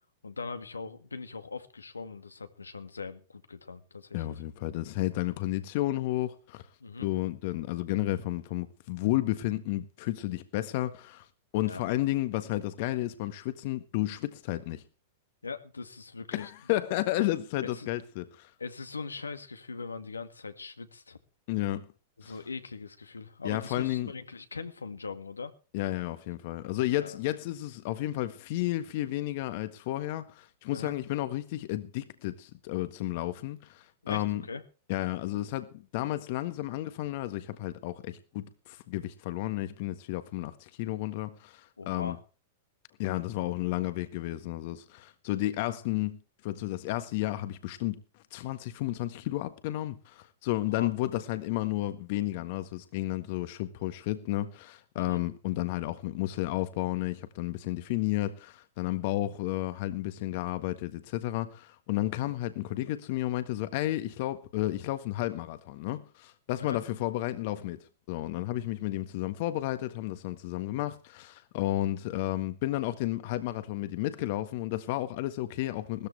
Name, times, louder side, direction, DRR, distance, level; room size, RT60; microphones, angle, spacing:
voice 1, 0.2-4.4 6.8-7.1 11.6-11.8 15.4-16.5 17.6-17.9 18.6-21.2 22.2-25.5 27.0-27.2 30.7-31.0 34.0-34.6 41.8-42.2 50.7-50.9 55.0-55.2 66.5-66.8, left 4 dB, 90° left, 2.0 m, -41 dB
voice 2, 4.1-6.6 7.0-11.3 11.5-14.8 16.3-18.5 21.5-21.9 22.2-22.3 23.4-24.1 25.7-34.4 34.9-42.2 43.0-48.0 48.3-76.1, left 16 dB, 55° left, 1.5 m, -32 dB
18.5 x 14.0 x 3.3 m
hypercardioid pair, 105°, 0 cm